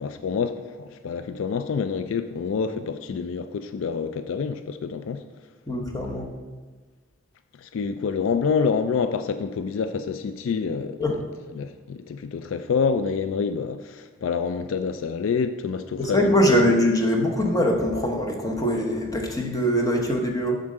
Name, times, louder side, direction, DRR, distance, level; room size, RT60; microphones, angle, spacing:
voice 1, 0.0-5.2 7.6-11.2 11.5-16.6, left 5 dB, 70° left, 10 dB, 0.3 m, -27 dB
voice 2, 5.7-6.3 11.0-11.2 16.0-20.6, equal, 15° left, 0 dB, 0.9 m, -22 dB
7.1 x 3.8 x 6.5 m, 1.4 s
head